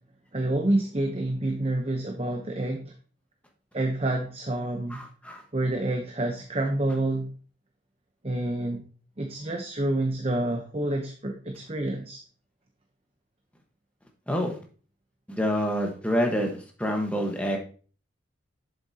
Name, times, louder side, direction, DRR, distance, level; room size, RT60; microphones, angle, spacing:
voice 1, 0.3-2.9 3.7-5.0 5.5-7.3 8.2-8.8 9.2-12.2, right 1 dB, 30° right, 3 dB, 0.8 m, -28 dB
voice 2, 4.9-5.4 14.3-14.6 15.3-17.6, equal, 5° left, 1 dB, 1.3 m, -27 dB
7.8 x 7.5 x 2.8 m, 0.40 s
head